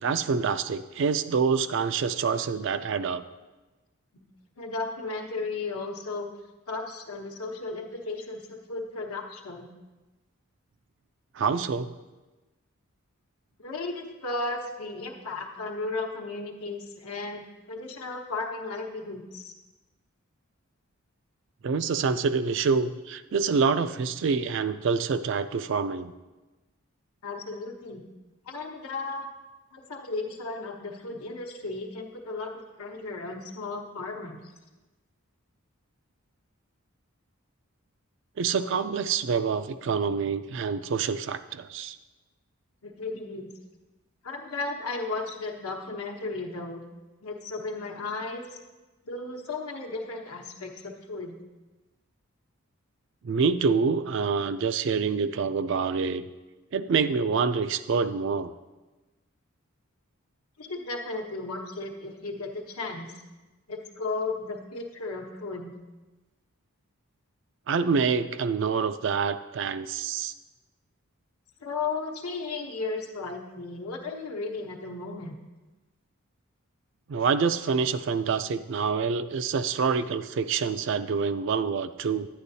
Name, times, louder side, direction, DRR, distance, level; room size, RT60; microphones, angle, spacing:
voice 1, 0.0-3.2 11.4-11.9 21.6-26.1 38.4-42.0 53.2-56.3 56.7-58.5 67.7-70.3 77.1-82.3, right 5 dB, 55° right, 12 dB, 0.3 m, -26 dB
voice 2, 4.6-6.3 6.7-9.7 13.6-19.5 27.2-28.0 28.5-29.3 29.7-32.5 32.8-34.4 42.8-43.5 44.2-46.8 47.2-48.4 49.0-51.4 60.6-63.1 63.7-65.7 71.6-75.4, left 3 dB, 85° left, 1 dB, 1.0 m, -35 dB
9.9 x 9.7 x 2.7 m, 1.2 s
head